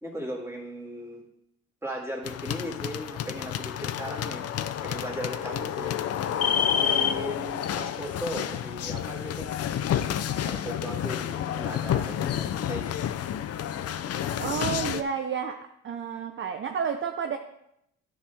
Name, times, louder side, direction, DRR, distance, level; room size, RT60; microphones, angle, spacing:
voice 1, 0.0-1.2 1.8-4.5 4.8-5.9 6.5-9.5 10.4-12.9, equal, 10° right, -3 dB, 2.1 m, -37 dB
sound 1, 2.2-15.0, left 9 dB, 55° left, 0.5 m, -29 dB
voice 2, 14.4-15.6 15.8-17.4, right 7 dB, 40° right, 5 dB, 0.6 m, -30 dB
10.0 x 5.6 x 3.4 m, 0.79 s
cardioid pair, 90°, 30 cm